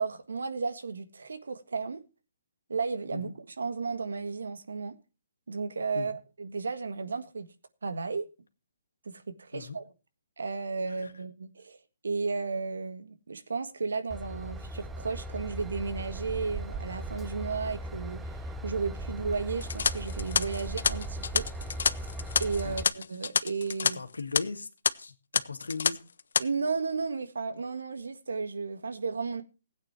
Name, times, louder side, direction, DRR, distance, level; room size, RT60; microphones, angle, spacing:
voice 1, 0.0-2.0 2.7-5.0 5.5-7.5 7.8-8.3 9.0-9.9 10.4-11.8 12.0-18.3 18.6-21.5 22.4-24.0 26.4-29.4, right 4 dB, 80° right, 1.6 m, -33 dB
voice 2, 10.9-11.2 22.6-22.9 23.9-24.7 25.0-26.0, left 4 dB, 90° left, 1.9 m, -38 dB
Train / Engine, 14.1-22.8, right 1 dB, 10° right, 0.7 m, -38 dB
sound 1, 19.6-23.9 24.2-24.4 24.8-24.9 25.3-25.9 26.2-26.4, left 5 dB, 70° left, 0.7 m, -28 dB
16.0 x 8.9 x 4.5 m
hypercardioid pair, 140°, 0 cm